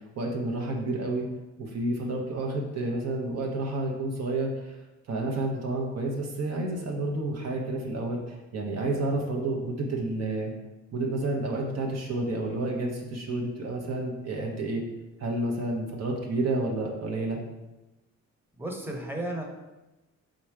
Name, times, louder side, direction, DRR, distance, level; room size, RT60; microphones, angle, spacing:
voice 1, 0.2-1.2 1.6-4.8 5.1-10.5 10.9-14.8 15.2-17.4, right 2 dB, 60° right, 0 dB, 0.9 m, -30 dB
voice 2, 18.5-19.4, right 1 dB, 5° right, 0 dB, 0.9 m, -33 dB
3.7 x 3.0 x 4.6 m, 1.0 s
cardioid pair, 90°, 30 cm